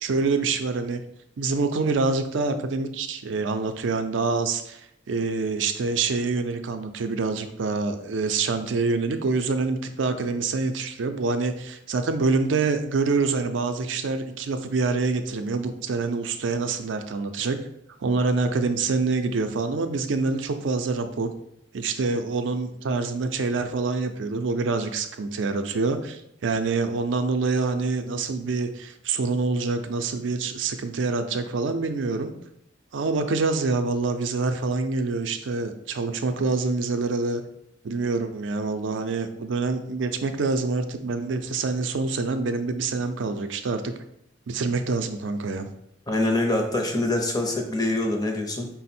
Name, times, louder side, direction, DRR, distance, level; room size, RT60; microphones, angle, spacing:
voice 1, 0.0-1.0 1.4-4.8 5.1-17.6 18.0-21.3 21.7-32.3 32.9-37.4 37.8-44.0 44.5-45.7, right 4 dB, 80° right, 8 dB, 0.4 m, -26 dB
voice 2, 46.1-48.7, left 2 dB, 20° left, 3 dB, 0.5 m, -24 dB
5.1 x 2.0 x 4.2 m, 0.77 s
head